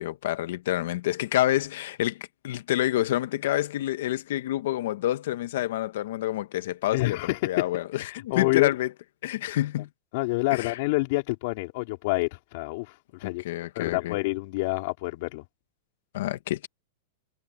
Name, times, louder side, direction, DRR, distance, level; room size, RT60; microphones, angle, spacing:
voice 1, 0.0-8.9 9.2-9.9 10.5-10.8 13.2-14.2 16.1-16.7, left 14 dB, 65° left, 1.3 m, -28 dB
voice 2, 6.9-8.7 10.1-13.4 13.8-15.4, left 23 dB, 50° left, 4.1 m, -28 dB
supercardioid pair, 155°, 0 cm